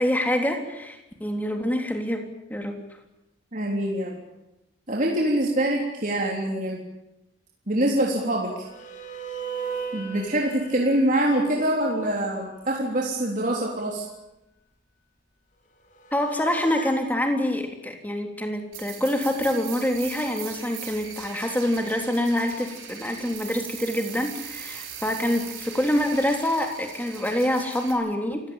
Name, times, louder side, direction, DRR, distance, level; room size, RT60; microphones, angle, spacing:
voice 1, 0.0-2.8 16.1-28.5, left 1 dB, 10° left, 4 dB, 3.4 m, -26 dB
voice 2, 3.5-4.2 4.9-6.8 7.7-8.7 9.9-14.1, right 1 dB, 40° right, -2 dB, 3.6 m, -24 dB
sound 1, 8.6-13.0 16.0-16.9, right 5 dB, 40° left, 3.5 m, -37 dB
sound 2, 18.7-27.9, right 8 dB, 90° right, 6.1 m, -40 dB
28.5 x 16.5 x 9.1 m, 0.92 s
head